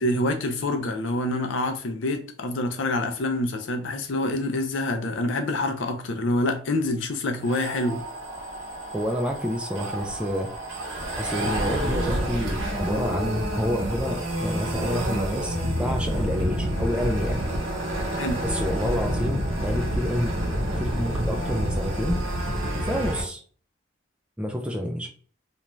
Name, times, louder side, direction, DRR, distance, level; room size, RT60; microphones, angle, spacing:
voice 1, 0.0-8.0 18.2-18.4, left 1 dB, 80° left, 0.5 m, -26 dB
sound 1, 7.4-23.2, equal, 80° right, 0.8 m, -28 dB
voice 2, 8.9-10.5 11.2-17.4 18.4-20.3 20.8-22.2 22.8-23.4 24.4-25.1, equal, 5° right, 0.3 m, -28 dB
2.5 x 2.2 x 3.0 m
head